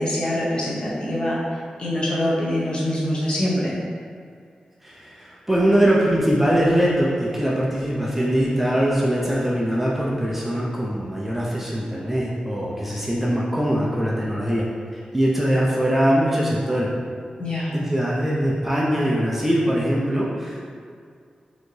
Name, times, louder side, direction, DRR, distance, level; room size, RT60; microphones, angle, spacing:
voice 1, 0.0-1.4 1.8-3.8 17.4-17.7, left 1 dB, 40° left, -6 dB, 0.9 m, -24 dB
voice 2, 4.8-14.7 14.9-16.9 17.7-20.6, equal, 10° right, -5 dB, 0.4 m, -22 dB
4.3 x 2.8 x 3.1 m, 2.2 s
wide cardioid pair, 170°, 2 cm